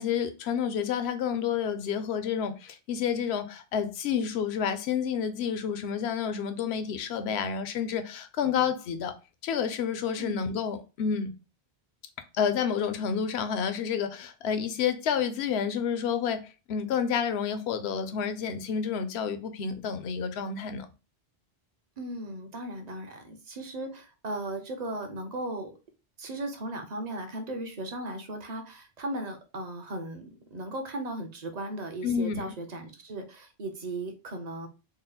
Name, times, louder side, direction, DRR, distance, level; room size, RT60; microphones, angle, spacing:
voice 1, 0.0-9.1 9.4-11.3 12.3-20.9 32.0-32.4, left 7 dB, 80° left, 0.8 m, -29 dB
voice 2, 22.0-25.8 26.2-34.7, right 1 dB, 45° right, 0.8 m, -37 dB
4.1 x 2.1 x 3.8 m
omnidirectional pair, 1.1 m